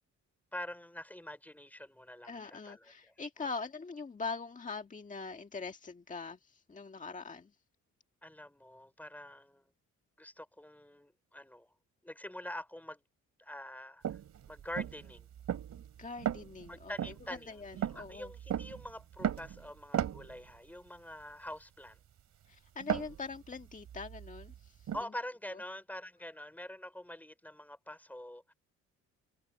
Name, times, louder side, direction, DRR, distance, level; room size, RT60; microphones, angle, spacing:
voice 1, 0.5-3.1 8.2-9.6 10.2-11.7 12.0-13.0 13.4-14.2 14.5-15.3 16.7-22.0 24.9-28.5, left 1 dB, 5° left, 4.9 m, -45 dB
voice 2, 2.2-7.5 16.0-16.9 17.3-18.3 22.5-24.9 25.5-25.6, left 4 dB, 25° left, 1.7 m, -43 dB
sound 1, 14.0-20.6 22.8-25.0, right 10 dB, 65° right, 3.4 m, -37 dB
cardioid pair, 90°, 30 cm